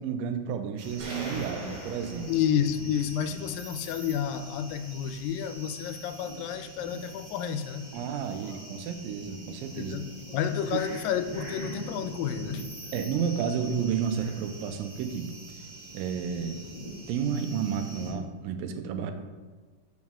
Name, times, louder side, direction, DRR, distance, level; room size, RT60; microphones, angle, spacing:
voice 1, 0.0-2.4 7.9-10.0 10.7-10.8 12.9-15.4 15.9-16.7 17.1-19.1, right 7 dB, 85° right, 8 dB, 2.3 m, -31 dB
sound 1, 0.8-18.1, right 1 dB, 30° right, 0.8 m, -44 dB
sound 2, 1.0-3.0, right 2 dB, 70° right, 3.3 m, -40 dB
voice 2, 2.3-7.9 9.8-12.7, left 8 dB, 85° left, 10 dB, 2.2 m, -30 dB
7.8 x 5.2 x 3.6 m, 1.4 s
omnidirectional pair, 3.9 m